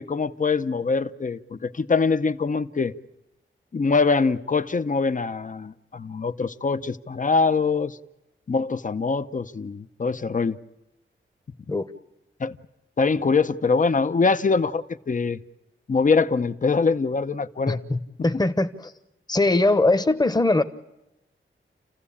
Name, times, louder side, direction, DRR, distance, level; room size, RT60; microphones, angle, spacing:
voice 1, 0.0-2.9 3.7-8.0 8.5-10.6 12.4-12.6 13.0-15.4 15.9-17.8, left 4 dB, 40° left, 12 dB, 0.8 m, -23 dB
voice 2, 17.7-18.9 19.3-20.6, left 2 dB, 20° left, 10 dB, 1.1 m, -21 dB
29.0 x 15.5 x 8.6 m, 0.96 s
wide cardioid pair, 120°, 21 cm